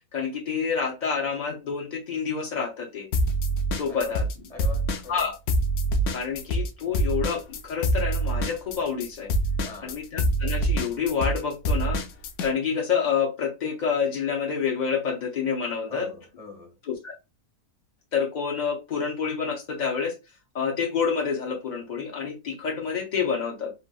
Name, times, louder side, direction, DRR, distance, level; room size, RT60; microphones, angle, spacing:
voice 1, 0.1-3.1 3.8-4.2 5.1-5.3 6.1-9.3 9.8-12.0 12.4-16.1 16.8-17.1 18.1-20.2 20.5-23.7, left 6 dB, 85° left, 0.4 m, -28 dB
sound 1, 3.1-4.3 4.6-12.5, right 1 dB, 70° left, 0.7 m, -25 dB
voice 2, 3.9-4.2 4.5-5.3 9.6-10.0 15.9-16.8, left 2 dB, 35° left, 0.7 m, -42 dB
3.3 x 2.6 x 2.2 m
omnidirectional pair, 1.6 m